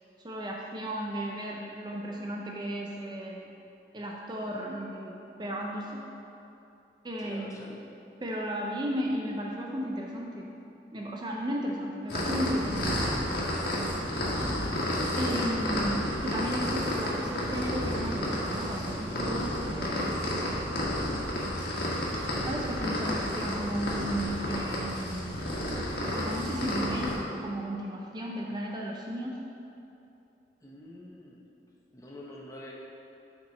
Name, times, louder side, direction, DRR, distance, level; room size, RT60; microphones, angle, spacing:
voice 1, 0.2-3.5 3.9-6.0 7.0-7.7 8.2-10.5 10.9-12.9 15.2-20.3 22.4-25.4 26.2-29.4, equal, 25° right, -1 dB, 0.5 m, -34 dB
voice 2, 7.2-7.7 13.9-14.2 30.6-31.4 31.9-32.7, left 1 dB, 20° left, -3 dB, 0.8 m, -47 dB
sound 1, 12.1-27.2, left 1 dB, 60° left, 1.6 m, -31 dB
8.3 x 4.9 x 4.0 m, 2.8 s
head